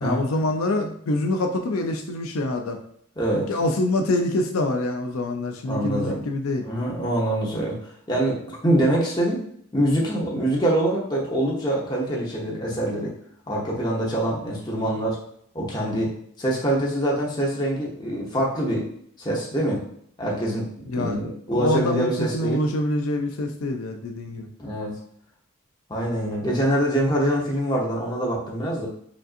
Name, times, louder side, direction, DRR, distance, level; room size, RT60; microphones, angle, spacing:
voice 1, 0.0-2.8 3.5-6.6 20.9-21.2 21.5-24.5, left 2 dB, 85° left, 4 dB, 0.5 m, -25 dB
voice 2, 3.2-3.5 5.6-6.2 6.6-7.8 8.1-9.4 9.7-13.1 13.5-15.2 15.5-18.9 19.2-19.9 20.2-20.6 20.9-22.6 24.6-24.9 25.9-28.9, right 1 dB, 20° left, -4 dB, 0.9 m, -24 dB
5.0 x 2.6 x 2.5 m, 0.67 s
head